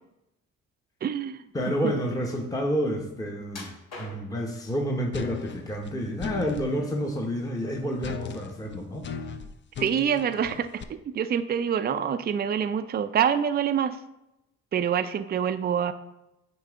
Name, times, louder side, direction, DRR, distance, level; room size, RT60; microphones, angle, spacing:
voice 1, 1.0-1.4 1.8-1.9 9.8-10.7 11.1-14.0 14.7-15.9, right 8 dB, 35° right, 10 dB, 0.4 m, -26 dB
voice 2, 1.5-3.7 4.0-9.1, equal, 10° left, 1 dB, 0.9 m, -29 dB
sound 1, 3.5-4.5 5.2-5.9 6.3-7.2 7.5-7.7 8.3-8.4, left 2 dB, 60° left, 2.5 m, -44 dB
sound 2, 5.1-6.7 8.0-10.8, left 6 dB, 40° left, 0.5 m, -37 dB
9.0 x 3.3 x 5.0 m, 0.90 s
cardioid pair, 90°, 30 cm